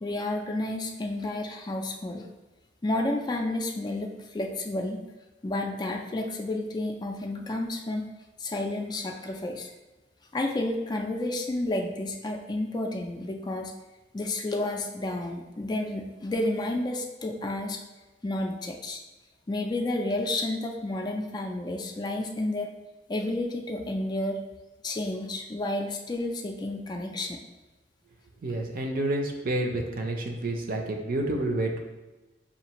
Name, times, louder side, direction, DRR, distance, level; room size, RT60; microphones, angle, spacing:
voice 1, 0.0-2.3 2.8-5.0 5.4-8.1 8.4-9.7 10.3-13.7 14.1-17.8 18.2-19.0 19.5-22.7 23.1-24.4 24.8-27.4, left 1 dB, 25° left, 2 dB, 0.3 m, -31 dB
voice 2, 28.4-31.8, right 2 dB, 50° right, 2 dB, 0.6 m, -29 dB
5.5 x 2.5 x 2.9 m, 1.1 s
head